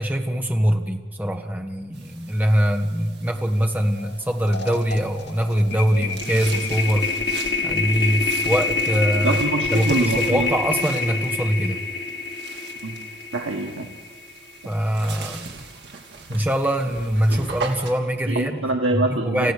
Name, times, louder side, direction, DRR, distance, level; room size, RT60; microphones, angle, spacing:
voice 1, 0.0-7.1 7.6-9.4 9.7-11.8 14.6-15.5 16.3-18.6 19.1-19.5, equal, 10° right, 4 dB, 1.4 m, -23 dB
sound 1, 1.9-17.9, right 4 dB, 55° right, 3.1 m, -40 dB
sound 2, 4.0-4.1 4.4-14.7, left 4 dB, 55° left, 2.0 m, -27 dB
voice 2, 9.2-10.5 12.8-13.0 13.3-13.9 18.3-19.5, right 2 dB, 90° right, 2 dB, 1.7 m, -24 dB
27.5 x 15.5 x 6.7 m, 1.4 s
head